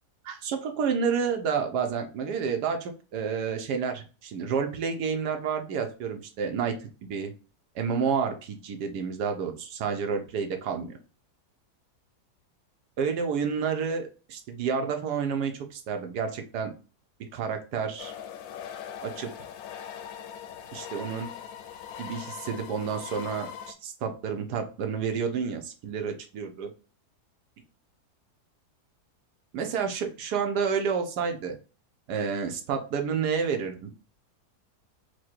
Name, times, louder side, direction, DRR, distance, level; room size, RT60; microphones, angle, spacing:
voice 1, 0.2-7.3 7.7-10.9 13.0-16.7 17.3-18.1 19.0-19.3 20.7-21.3 22.0-26.7 29.5-31.6 32.1-33.9, right 6 dB, 80° right, 5 dB, 1.3 m, -30 dB
sound 1, 18.0-23.7, left 9 dB, 70° left, 1.0 m, -41 dB
4.8 x 2.2 x 4.4 m, 0.34 s
omnidirectional pair, 1.7 m